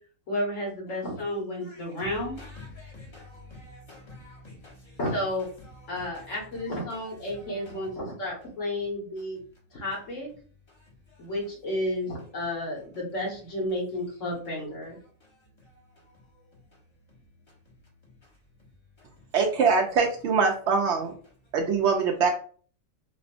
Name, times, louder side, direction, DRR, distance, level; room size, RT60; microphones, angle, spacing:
voice 1, 0.3-2.4 5.0-5.5 5.9-9.4 9.7-10.3 11.2-15.0, left 1 dB, 70° left, 1.6 m, -32 dB
voice 2, 1.6-5.0 6.0-6.1 7.3-7.9, left 2 dB, 25° left, 1.0 m, -46 dB
voice 3, 19.3-21.1 21.5-22.3, right 5 dB, 65° right, 0.8 m, -23 dB
4.2 x 2.1 x 2.5 m
omnidirectional pair, 1.4 m